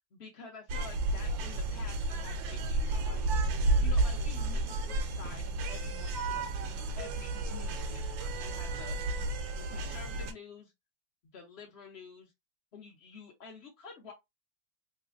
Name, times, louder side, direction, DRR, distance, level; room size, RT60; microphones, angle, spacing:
voice 1, 0.1-3.3 3.8-9.0 9.5-10.7 11.3-12.3 12.7-14.1, left 5 dB, 55° left, 0.7 m, -49 dB
sound 1, 0.7-10.3, right 2 dB, 80° right, 1.4 m, -32 dB
3.3 x 2.9 x 2.4 m
omnidirectional pair, 2.1 m